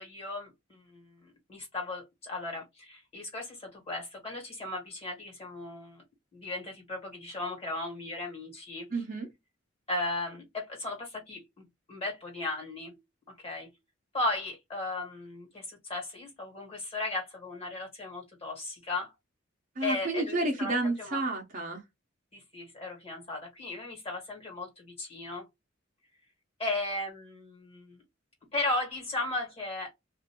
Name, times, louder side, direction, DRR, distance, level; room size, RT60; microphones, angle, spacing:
voice 1, 0.0-6.0 6.3-8.9 9.9-11.4 11.9-12.9 13.4-13.7 14.1-19.1 19.8-21.2 22.3-25.4 26.6-28.0 28.5-29.9, left 2 dB, 30° left, 1.5 m, -36 dB
voice 2, 8.9-9.3 19.8-21.8, right 2 dB, 40° right, 0.8 m, -30 dB
2.6 x 2.6 x 2.8 m
head